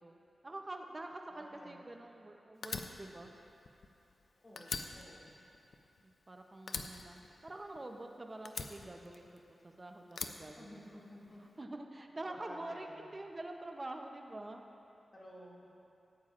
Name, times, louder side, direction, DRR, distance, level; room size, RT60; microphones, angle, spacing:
voice 1, 0.0-3.3 6.3-10.9 11.6-14.6, right 2 dB, 35° right, 3 dB, 0.9 m, -46 dB
voice 2, 1.3-1.8 4.4-5.3 10.3-11.4 12.2-13.0 15.1-15.6, equal, 45° left, -6 dB, 2.5 m, -53 dB
Fire, 2.6-4.3 4.6-6.3 6.7-8.0 8.5-9.6 10.1-11.3, left 4 dB, 80° left, 0.5 m, -43 dB
16.5 x 9.1 x 2.6 m, 2.8 s
cardioid pair, 65°, 0 cm